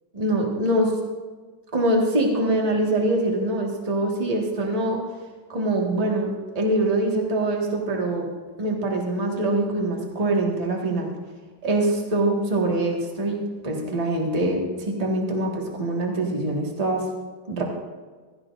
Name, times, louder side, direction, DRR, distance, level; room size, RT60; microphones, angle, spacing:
voice 1, 0.1-0.9 1.7-5.0 5.5-8.3 8.6-11.1 11.6-17.1 17.5-17.6, right 1 dB, 45° right, -1 dB, 0.4 m, -24 dB
16.0 x 15.5 x 2.6 m, 1.4 s
omnidirectional pair, 3.8 m